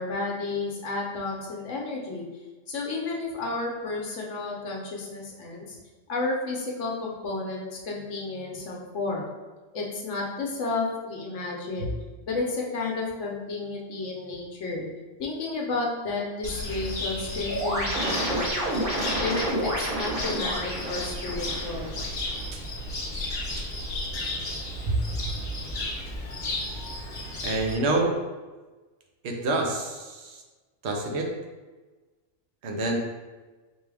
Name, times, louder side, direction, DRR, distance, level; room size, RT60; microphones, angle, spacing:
voice 1, 0.0-2.2 2.7-5.8 6.1-9.3 9.7-11.9 12.3-14.8 15.2-18.8 19.2-21.9, left 3 dB, 85° left, -2 dB, 1.2 m, -32 dB
Cricket, 16.4-27.7, left 1 dB, 60° left, 1.1 m, -34 dB
sound 1, 17.5-22.5, right 1 dB, 50° right, 1.2 m, -30 dB
voice 2, 27.4-28.1 29.2-30.4 30.8-31.3 32.6-33.0, right 2 dB, 70° right, 1 dB, 0.9 m, -27 dB
4.9 x 2.3 x 3.3 m, 1.3 s
omnidirectional pair, 1.2 m